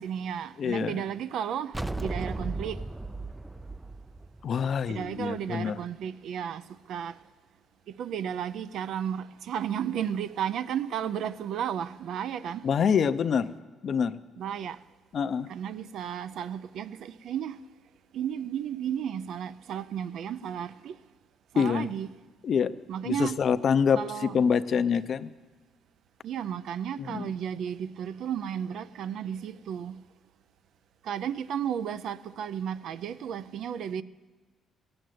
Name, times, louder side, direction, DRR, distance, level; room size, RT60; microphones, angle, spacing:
voice 1, 0.0-2.8 4.9-7.1 7.9-12.7 14.4-14.8 15.5-17.6 18.1-21.0 21.5-22.1 22.9-23.4 23.9-24.4 26.2-30.0 31.0-34.0, right 9 dB, 75° right, 0.5 m, -33 dB
voice 2, 0.6-1.0 4.4-5.8 12.6-13.5 13.8-14.2 15.1-15.5 21.6-21.9 22.4-22.7 23.1-25.3 27.0-27.3, left 6 dB, 55° left, 0.6 m, -26 dB
sound 1, 1.7-5.2, right 2 dB, 10° right, 0.4 m, -35 dB
17.0 x 7.8 x 9.3 m
cardioid pair, 90°, 0 cm